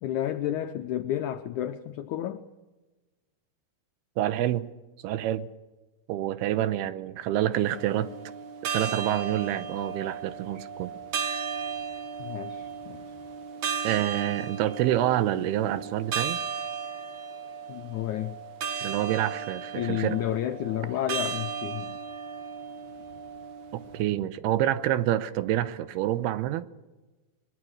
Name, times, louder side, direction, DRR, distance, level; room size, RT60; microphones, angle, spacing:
voice 1, 0.0-2.4 12.2-13.0 17.7-18.4 19.7-22.0, left 12 dB, 85° left, 7 dB, 1.7 m, -31 dB
voice 2, 4.2-4.7 5.0-5.5 6.1-8.1 8.7-10.9 13.8-16.4 18.8-20.2 23.7-26.7, right 13 dB, 85° right, 14 dB, 2.9 m, -27 dB
sound 1, 7.6-24.0, right 6 dB, 60° right, 2.4 m, -35 dB
22.5 x 22.0 x 6.5 m, 1.2 s
omnidirectional pair, 4.5 m